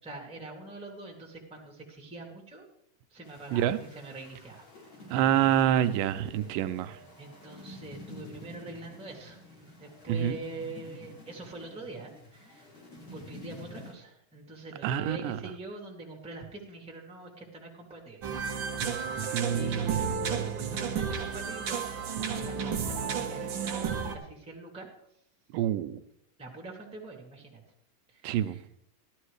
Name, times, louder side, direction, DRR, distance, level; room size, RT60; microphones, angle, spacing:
voice 1, 0.0-2.6 3.1-4.7 7.2-9.4 9.8-12.7 13.1-18.3 19.0-19.2 19.5-21.9 22.2-24.9 26.4-27.6 28.1-28.6, right 2 dB, ahead, 0 dB, 1.6 m, -44 dB
sound 1, 3.2-13.9, left 2 dB, 35° left, 4.6 m, -49 dB
voice 2, 5.1-7.0 10.1-10.4 14.8-15.4 19.3-20.1 25.5-26.0 28.2-28.6, right 10 dB, 90° right, 10 dB, 2.3 m, -27 dB
sound 2, 18.2-24.2, right 6 dB, 65° right, 1.2 m, -32 dB
13.0 x 13.0 x 3.2 m, 0.72 s
omnidirectional pair, 3.9 m